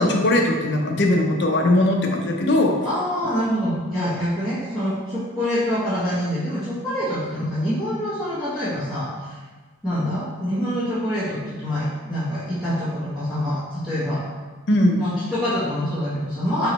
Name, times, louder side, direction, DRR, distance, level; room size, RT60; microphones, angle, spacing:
voice 1, 0.0-2.7 14.7-15.0, left 1 dB, 55° left, 2 dB, 0.5 m, -19 dB
voice 2, 2.8-9.4 9.8-14.2 15.0-16.7, equal, ahead, -15 dB, 1.1 m, -25 dB
5.3 x 3.1 x 2.9 m, 1.4 s
head